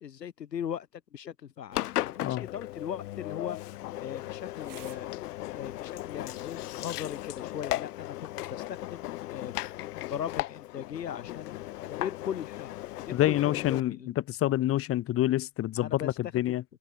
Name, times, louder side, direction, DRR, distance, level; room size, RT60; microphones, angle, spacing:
voice 1, 0.0-3.6 4.0-5.1 5.5-9.6 10.0-11.6 11.9-14.1 15.8-16.2 16.5-16.6, left 9 dB, 90° left, 1.3 m, -39 dB
Engine, 1.7-13.8, left 16 dB, 65° left, 1.1 m, -37 dB
sound 1, 2.0-7.0, right 19 dB, 40° right, 6.7 m, -59 dB
voice 2, 13.1-14.0 14.3-16.6, left 14 dB, 30° left, 1.2 m, -27 dB
hypercardioid pair, 100°, 48 cm